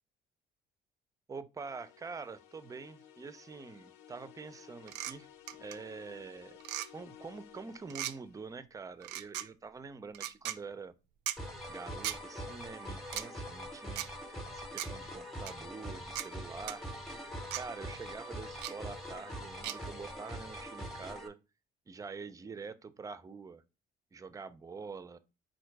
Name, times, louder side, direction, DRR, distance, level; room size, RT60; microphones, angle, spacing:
voice 1, 1.3-6.6 6.9-10.9 11.7-14.1 14.5-16.9 17.5-21.4 21.9-23.6 24.1-25.2, right 4 dB, 20° right, 0.4 m, -46 dB
sound 1, 1.6-8.6, left 10 dB, 90° left, 0.5 m, -56 dB
sound 2, 4.9-5.1 5.5-5.8 6.6-6.9 7.9-8.1 9.0-9.5 10.1-10.6 11.3-11.4 12.0-12.2 13.1-13.3 14.0-14.1 14.8-14.9 15.5-15.6 16.2-16.3 16.7-16.8 17.5-17.6 18.6-18.7 19.6-19.8, right 13 dB, 85° right, 0.4 m, -37 dB
sound 3, 11.4-21.3, equal, ahead, 0.8 m, -43 dB
3.8 x 2.5 x 4.5 m
cardioid pair, 110°, 17 cm